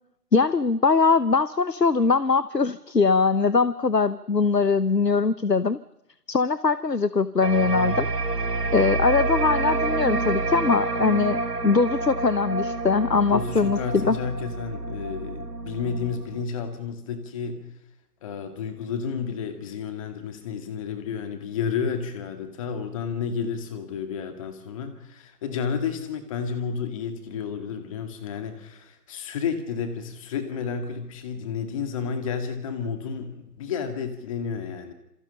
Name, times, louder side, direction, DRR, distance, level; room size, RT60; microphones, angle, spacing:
voice 1, 0.3-5.8 6.3-8.1 8.7-14.2, left 4 dB, 90° left, 16 dB, 1.1 m, -21 dB
sound 1, 7.4-16.4, right 3 dB, 80° right, 1.8 m, -28 dB
voice 2, 13.3-17.6 18.2-34.9, left 6 dB, 20° left, 7 dB, 2.3 m, -31 dB
27.5 x 27.0 x 5.6 m, 0.85 s
figure-of-eight pair, 145°, 48 cm